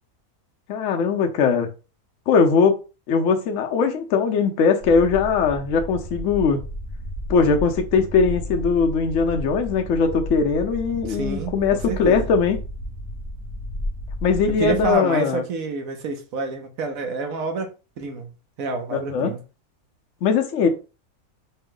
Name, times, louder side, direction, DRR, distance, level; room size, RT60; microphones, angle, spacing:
voice 1, 0.7-1.7 2.3-2.8 3.1-6.6 7.3-12.6 14.2-15.4 18.9-19.3 20.2-20.7, left 5 dB, 60° left, 0.9 m, -20 dB
sound 1, 4.8-14.9, left 1 dB, 20° right, 0.5 m, -33 dB
voice 2, 11.1-12.3 14.6-18.3 18.6-19.4, right 4 dB, 70° right, 1.1 m, -28 dB
4.4 x 2.1 x 3.7 m
omnidirectional pair, 1.6 m